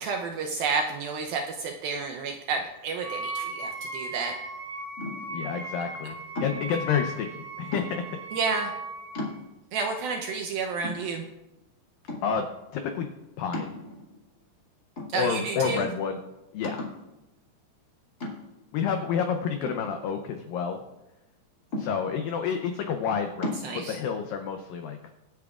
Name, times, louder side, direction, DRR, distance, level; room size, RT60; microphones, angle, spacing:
voice 1, 0.0-4.3 8.3-8.7 9.7-11.2 15.1-15.9 23.4-24.0, right 4 dB, 80° right, 3 dB, 2.1 m, -30 dB
Wind instrument woodwind instrument, 3.0-9.3, right 2 dB, 50° right, 2.6 m, -37 dB
sound 1, 5.0-5.4 6.3-6.8 7.7-8.2 8.7-8.8 9.1-9.8 10.3-10.4 10.8-11.6 12.1-12.5 13.5-14.3 15.0-15.6 15.9-16.0 16.6-17.1 18.2-18.7 19.6-20.5 21.7-22.3 23.4-23.7, left 2 dB, 30° left, 1.9 m, -36 dB
voice 2, 5.3-8.2 12.2-12.5 12.7-13.1 13.4-13.7 15.1-16.2 16.5-16.8 18.7-20.8 21.8-25.0, left 7 dB, 90° left, 5 dB, 2.0 m, -29 dB
24.0 x 8.4 x 2.4 m, 0.98 s
omnidirectional pair, 5.0 m